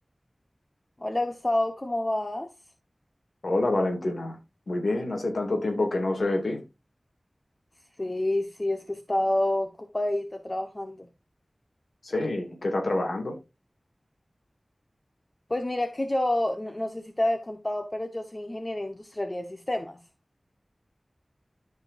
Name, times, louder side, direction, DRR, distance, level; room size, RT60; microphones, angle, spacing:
voice 1, 1.0-2.5 8.0-11.1 15.5-20.0, left 1 dB, 35° left, 1.2 m, -28 dB
voice 2, 3.4-4.4 4.7-6.6 12.0-13.4, left 2 dB, 85° left, 2.4 m, -27 dB
14.0 x 5.3 x 2.6 m
wide cardioid pair, 50°, 0 cm